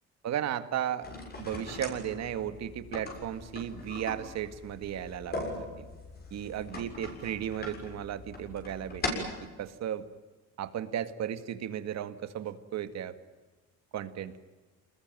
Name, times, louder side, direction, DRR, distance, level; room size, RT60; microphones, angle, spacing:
voice 1, 0.2-1.1 1.4-5.9 6.3-9.3 9.6-10.1 10.6-13.2 13.9-14.4, right 10 dB, 65° right, 11 dB, 2.0 m, -35 dB
sound 1, 1.0-9.5, left 2 dB, 35° left, 6.7 m, -40 dB
28.5 x 20.5 x 9.1 m, 1.3 s
cardioid pair, 155°, 29 cm